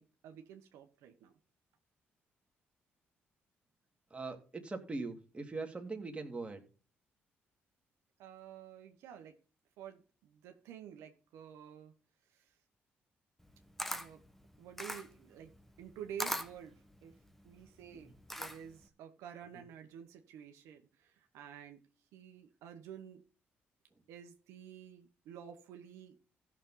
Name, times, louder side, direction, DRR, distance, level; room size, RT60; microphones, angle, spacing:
voice 1, 0.0-1.3 8.2-9.4 9.8-11.9 12.3-12.5 13.9-14.2 14.6-15.5 15.8-17.1 17.4-21.8 22.1-23.2 24.1-26.2, right 9 dB, 85° right, 5 dB, 1.1 m, -50 dB
voice 2, 4.1-6.6, right 3 dB, 25° right, 3 dB, 2.3 m, -41 dB
Camera, 13.4-18.9, equal, 5° left, 1.1 m, -42 dB
14.5 x 6.4 x 3.9 m, 0.36 s
supercardioid pair, 75°, 5 cm